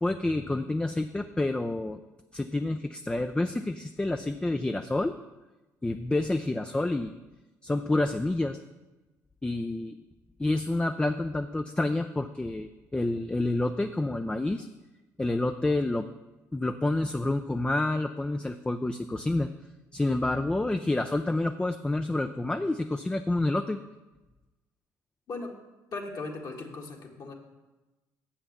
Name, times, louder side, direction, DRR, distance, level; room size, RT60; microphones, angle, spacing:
voice 1, 0.0-2.0 2.3-5.1 5.8-7.1 7.6-8.6 9.4-10.0 10.4-14.7 15.2-16.1 16.5-19.5 19.9-23.8, left 2 dB, 10° left, 8 dB, 0.4 m, -28 dB
voice 2, 25.9-27.3, left 3 dB, 50° left, 1 dB, 1.6 m, -38 dB
7.0 x 5.7 x 6.6 m, 1.1 s
hypercardioid pair, 60°, 8 cm